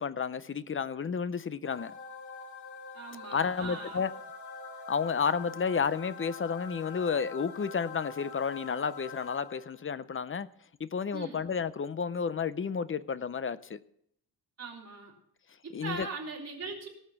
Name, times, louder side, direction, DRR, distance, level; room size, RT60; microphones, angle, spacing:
voice 1, 0.0-1.9 3.3-4.1 4.9-10.5 10.8-13.8 15.7-16.1, left 6 dB, 35° left, 0.5 m, -31 dB
sound 1, 1.6-9.9, left 4 dB, 50° left, 2.0 m, -45 dB
voice 2, 2.9-4.0 11.1-11.4 14.6-15.1 15.6-16.9, right 4 dB, 40° right, 3.8 m, -40 dB
18.0 x 6.6 x 5.9 m
wide cardioid pair, 150°, 38 cm